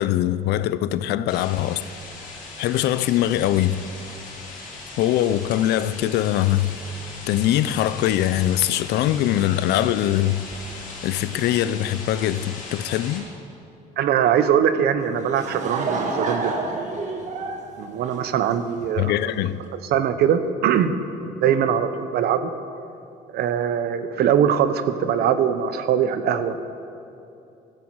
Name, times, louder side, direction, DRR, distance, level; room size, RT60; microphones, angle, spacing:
voice 1, 0.0-1.8 2.6-3.8 5.0-6.8 7.3-10.4 11.0-13.3 19.0-19.6, left 12 dB, 75° left, 0.5 m, -22 dB
sound 1, 1.3-13.2, left 3 dB, 50° left, 3.5 m, -38 dB
voice 2, 14.0-16.9 17.8-19.1 19.7-20.9 21.2-22.5 23.3-26.6, right 8 dB, 70° right, 0.9 m, -22 dB
Laughter / Crowd, 15.0-18.8, right 3 dB, 45° right, 1.8 m, -29 dB
15.5 x 13.5 x 4.7 m
cardioid pair, 110°, 17 cm